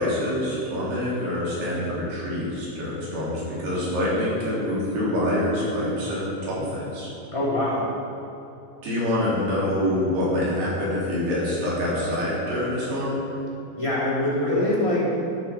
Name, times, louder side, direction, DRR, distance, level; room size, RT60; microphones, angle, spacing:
voice 1, 0.0-7.1 8.8-13.2, left 1 dB, 85° right, -7 dB, 5.4 m, -26 dB
voice 2, 7.3-7.8 13.8-15.0, left 1 dB, 10° left, -8 dB, 2.7 m, -23 dB
12.0 x 11.5 x 4.5 m, 3.0 s
omnidirectional pair, 4.5 m